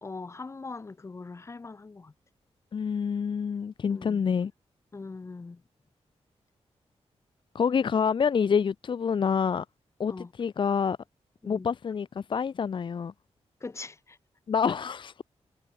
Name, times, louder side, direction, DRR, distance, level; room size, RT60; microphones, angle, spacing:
voice 1, 0.0-2.1 3.8-4.2 4.9-5.6 10.1-10.3 11.4-11.7 13.6-14.2, left 3 dB, 25° left, 1.7 m, -41 dB
voice 2, 2.7-4.5 7.5-9.6 10.0-10.1 10.4-11.0 11.5-13.1 14.5-15.1, left 6 dB, 45° left, 0.9 m, -27 dB
wide cardioid pair, 180°, 11 cm